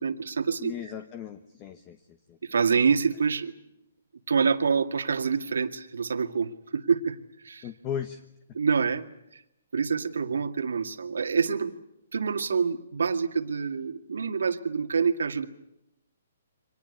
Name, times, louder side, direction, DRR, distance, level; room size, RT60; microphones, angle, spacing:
voice 1, 0.0-0.7 2.4-3.5 4.3-7.2 7.4-7.7 8.5-9.1 9.3-9.4 9.7-11.7 12.1-15.5, right 5 dB, 90° right, 9 dB, 2.0 m, -26 dB
voice 2, 0.6-2.4 7.6-8.2, left 9 dB, 20° left, 10 dB, 1.1 m, -37 dB
25.0 x 19.0 x 9.8 m, 0.86 s
hypercardioid pair, 165°, 0 cm